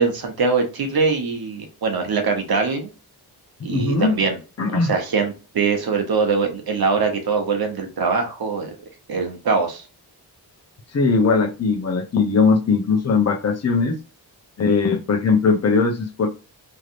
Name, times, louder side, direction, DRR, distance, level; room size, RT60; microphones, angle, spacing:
voice 1, 0.0-2.9 3.6-4.4 4.7-8.7 9.1-9.9, right 4 dB, 65° right, 4 dB, 0.9 m, -22 dB
voice 2, 3.7-4.1 4.6-4.9 10.9-14.0 14.6-16.3, left 4 dB, 40° left, 2 dB, 0.7 m, -19 dB
3.3 x 2.7 x 2.5 m, 0.32 s
wide cardioid pair, 165°, 40 cm